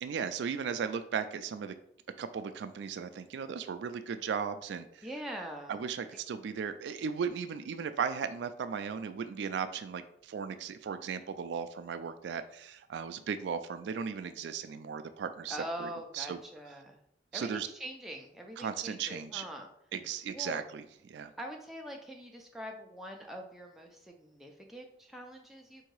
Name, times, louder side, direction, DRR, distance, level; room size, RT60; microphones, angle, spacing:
voice 1, 0.0-1.7 2.2-5.0 5.7-15.9 16.1-16.4 17.3-17.7 18.6-19.4 19.9-21.3, right 6 dB, 70° right, 10 dB, 0.3 m, -36 dB
voice 2, 5.0-5.8 15.5-17.0 17.3-19.7 20.3-20.6 21.4-25.8, equal, ahead, 1 dB, 0.5 m, -43 dB
3.8 x 2.7 x 4.6 m, 0.70 s
head